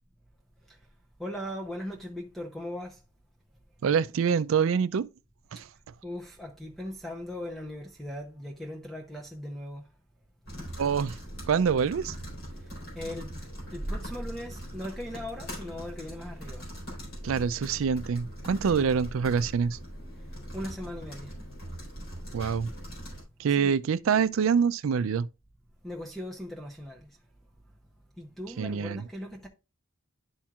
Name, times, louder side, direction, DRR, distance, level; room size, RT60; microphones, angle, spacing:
voice 1, 1.2-3.0 6.0-9.9 12.6-12.7 12.9-13.3 13.7-16.7 18.7-18.9 20.2-20.3 20.5-21.3 23.6-23.8 25.8-27.1 28.2-29.5, left 1 dB, ahead, 0.7 m, -39 dB
voice 2, 3.8-5.1 5.5-5.6 10.8-11.1 11.5-12.1 17.2-19.8 22.3-22.7 23.4-25.3 28.6-29.0, right 6 dB, 80° right, 0.4 m, -25 dB
sound 1, 10.4-23.2, equal, 85° left, 3.9 m, -40 dB
11.0 x 4.4 x 2.4 m
head